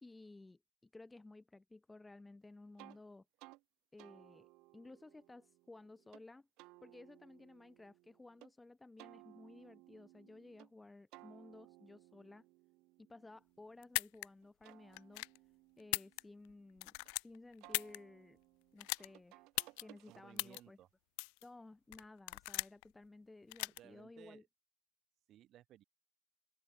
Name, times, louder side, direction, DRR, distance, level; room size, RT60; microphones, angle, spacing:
voice 1, 0.0-3.3 3.9-4.5 4.7-6.5 6.8-12.4 13.0-15.3 15.8-18.4 18.7-19.5 19.8-20.8 21.4-24.4, left 2 dB, 5° left, 0.7 m, -56 dB
sound 1, 2.8-3.0 3.4-3.6 4.0-6.2 6.6-8.5 9.0-10.7 11.1-14.0 14.4-17.1 17.6-20.6, right 23 dB, 55° right, 0.8 m, -62 dB
sound 2, 13.8-14.3 14.9-15.4 15.8-16.5 16.8-18.0 18.8-19.1 19.6-19.8 20.4-20.6 21.2-21.4 21.9-22.8 23.5-23.8, left 40 dB or more, 70° left, 0.3 m, -38 dB
voice 2, 20.1-20.9 23.7-24.5 25.3-25.8, right 13 dB, 35° right, 5.1 m, -60 dB
open air
cardioid pair, 170°, 0 cm